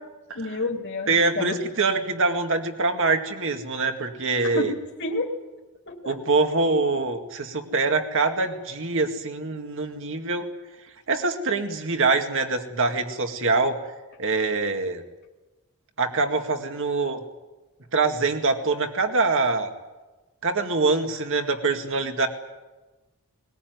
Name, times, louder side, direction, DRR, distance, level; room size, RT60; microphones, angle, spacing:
voice 1, 0.3-1.6 4.4-5.3 5.9-6.2, left 2 dB, 55° left, 1 dB, 2.7 m, -30 dB
voice 2, 1.1-4.7 6.0-10.5 11.1-13.8 14.2-15.0 16.0-17.2 17.9-19.7 20.4-22.3, right 3 dB, 60° right, 6 dB, 2.1 m, -24 dB
21.0 x 20.0 x 9.5 m, 1.2 s
head